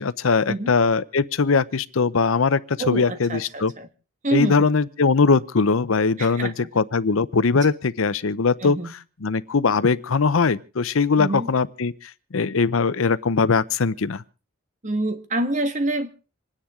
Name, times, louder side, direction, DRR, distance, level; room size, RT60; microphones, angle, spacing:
voice 1, 0.0-3.7 4.3-8.8 9.2-14.2, left 4 dB, 75° left, 0.7 m, -21 dB
voice 2, 2.8-3.9 4.2-4.7 6.2-6.7 8.6-8.9 11.2-11.5 14.8-16.2, right 1 dB, 35° right, 1.6 m, -27 dB
27.0 x 10.0 x 3.7 m
head